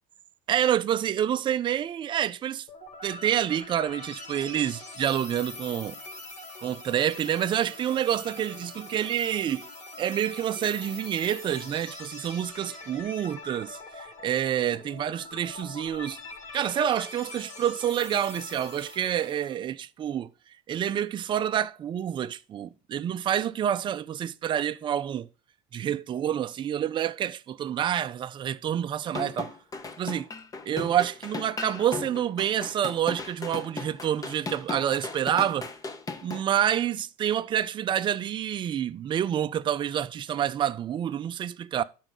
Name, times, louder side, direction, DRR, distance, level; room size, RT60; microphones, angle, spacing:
voice 1, 0.5-2.7 3.0-6.0 6.6-9.6 10.0-16.2 16.5-20.3 20.7-25.3 25.7-29.5 30.0-30.3 30.7-35.7 36.2-41.8, right 10 dB, 30° right, 0.4 m, -28 dB
sound 1, 2.7-19.6, left 2 dB, 45° left, 2.0 m, -43 dB
sound 2, 29.0-36.4, left 4 dB, 20° left, 0.7 m, -37 dB
12.0 x 4.5 x 3.9 m
cardioid pair, 135°, 17 cm